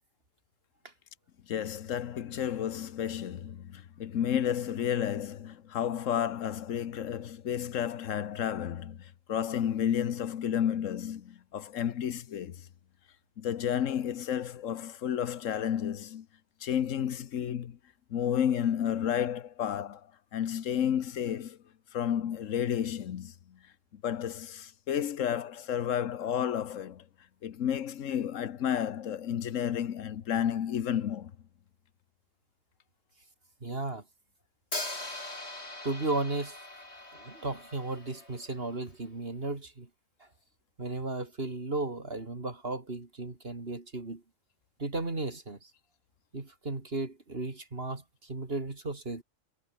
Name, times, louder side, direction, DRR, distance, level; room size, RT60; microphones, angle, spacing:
voice 1, 1.5-12.7 13.4-16.3 16.6-17.8 18.1-21.6 21.9-23.6 23.9-27.0 27.4-31.3, left 9 dB, 90° left, 1.3 m, -31 dB
voice 2, 33.6-34.0 35.8-36.6 37.2-39.9 40.8-44.2 44.8-45.7 46.3-49.2, right 2 dB, 50° right, 3.1 m, -35 dB
Hi-hat, 34.7-38.7, left 2 dB, 60° left, 5.8 m, -41 dB
omnidirectional pair, 1.3 m